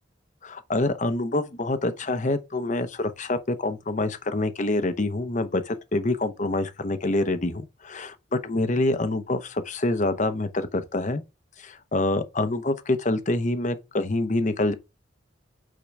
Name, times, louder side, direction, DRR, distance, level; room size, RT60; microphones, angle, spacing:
voice 1, 0.4-11.2 11.6-14.7, left 2 dB, 40° left, 0.8 m, -26 dB
8.6 x 3.8 x 4.6 m
head